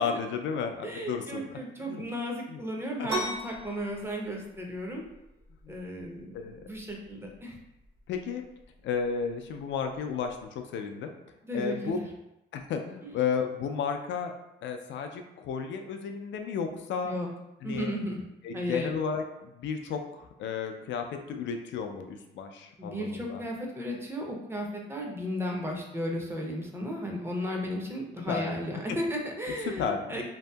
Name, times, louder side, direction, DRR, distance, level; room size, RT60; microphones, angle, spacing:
voice 1, 0.0-2.0 2.5-2.6 3.0-3.1 5.6-5.7 6.3-6.7 8.1-8.4 8.8-11.1 11.5-12.0 12.5-14.3 14.6-17.1 17.6-17.9 18.4-23.4 28.3-28.5 29.8-30.2, left 6 dB, 70° left, 5 dB, 0.4 m, -33 dB
voice 2, 0.8-5.0 5.7-7.6 11.4-12.0 13.0-13.2 17.0-17.3 17.6-18.2 18.5-18.9 22.8-30.2, equal, 10° right, 0 dB, 0.6 m, -34 dB
sound 1, 3.1-10.5, right 1 dB, 80° right, 1.1 m, -40 dB
2.7 x 2.5 x 2.2 m, 0.91 s
cardioid pair, 90°, 20 cm